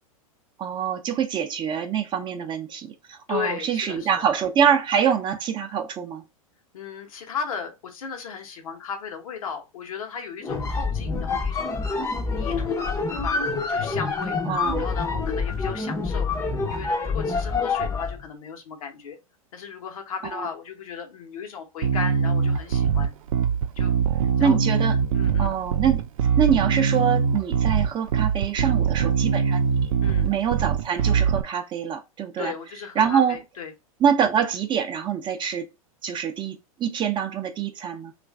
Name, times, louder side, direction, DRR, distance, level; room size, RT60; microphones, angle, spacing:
voice 1, 0.6-6.2 11.1-11.2 14.5-14.9 20.3-20.5 24.4-25.0 25.4-26.0 26.4-29.7 30.2-32.5 33.0-33.4 34.0-35.7 36.0-38.1, right 8 dB, 25° right, 0.6 m, -25 dB
voice 2, 3.3-4.2 6.7-11.7 12.2-13.4 13.7-14.4 14.8-16.3 16.7-19.2 19.5-23.1 23.7-23.9 24.4-24.6 25.1-25.6 30.0-30.3 32.4-33.7, left 6 dB, 70° left, 1.0 m, -35 dB
sound 1, 10.4-18.2, left 4 dB, 15° left, 0.6 m, -26 dB
Bass guitar, 21.8-31.4, right 7 dB, 70° right, 0.5 m, -22 dB
3.1 x 2.5 x 3.4 m
hypercardioid pair, 110°, 18 cm